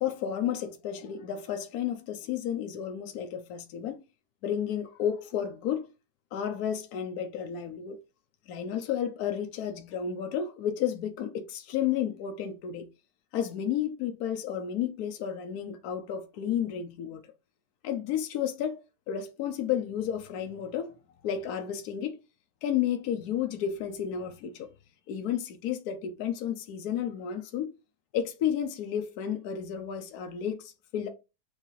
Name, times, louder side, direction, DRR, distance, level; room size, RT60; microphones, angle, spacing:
voice 1, 0.0-4.0 4.4-5.9 6.3-8.0 8.5-12.9 13.3-17.2 17.8-20.9 21.2-22.2 22.6-24.7 25.1-27.7 28.1-31.1, left 9 dB, 75° left, 1.2 m, -32 dB
6.4 x 2.7 x 3.0 m
omnidirectional pair, 1.6 m